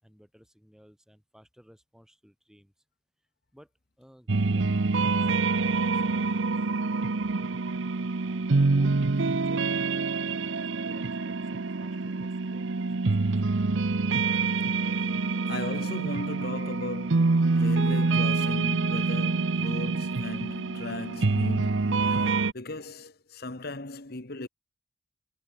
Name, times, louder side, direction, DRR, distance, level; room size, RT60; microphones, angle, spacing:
voice 1, 0.0-2.7 3.5-3.7 4.0-6.7 6.9-7.6 8.2-13.3, equal, 5° right, 8.0 m, -57 dB
sound 1, 4.3-22.5, right 3 dB, 70° right, 0.8 m, -26 dB
voice 2, 15.5-24.5, left 2 dB, 50° left, 1.5 m, -37 dB
head